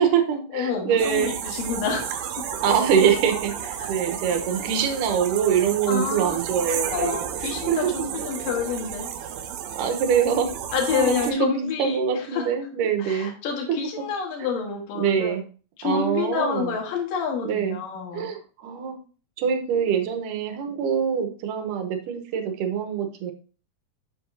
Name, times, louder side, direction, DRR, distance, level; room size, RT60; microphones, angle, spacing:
voice 1, 0.0-1.3 2.6-7.2 7.7-7.9 9.8-10.6 10.9-13.3 15.0-15.4 15.8-16.8 17.4-17.8 18.1-19.0 19.4-23.3, right 7 dB, 75° right, 6 dB, 2.4 m, -24 dB
voice 2, 0.5-2.5 3.8-3.9 4.3-4.4 5.9-6.4 6.9-9.1 10.7-12.5 13.0-15.4 15.8-18.3, left 6 dB, 75° left, 0 dB, 3.2 m, -28 dB
sound 1, 1.0-11.3, right 9 dB, 90° right, 2.5 m, -32 dB
7.8 x 7.3 x 2.6 m, 0.37 s
omnidirectional pair, 4.0 m